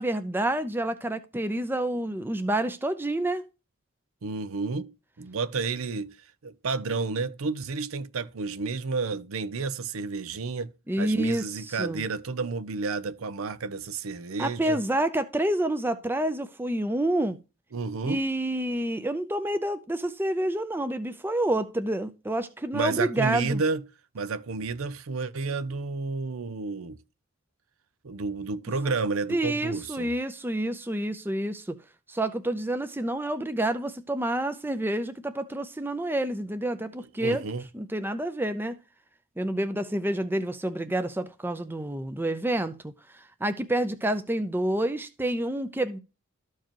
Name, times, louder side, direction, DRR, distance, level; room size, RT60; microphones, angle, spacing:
voice 1, 0.0-3.4 10.9-12.1 14.4-17.4 18.1-23.6 28.8-28.9 29.3-31.8 32.1-37.4 37.7-38.8 39.4-46.0, right 1 dB, 10° right, 0.5 m, -28 dB
voice 2, 4.2-6.2 6.4-10.7 11.0-14.8 17.7-18.2 22.7-23.8 24.1-27.0 28.0-30.1 37.2-37.6, right 4 dB, 75° right, 0.6 m, -31 dB
13.5 x 4.6 x 2.9 m
head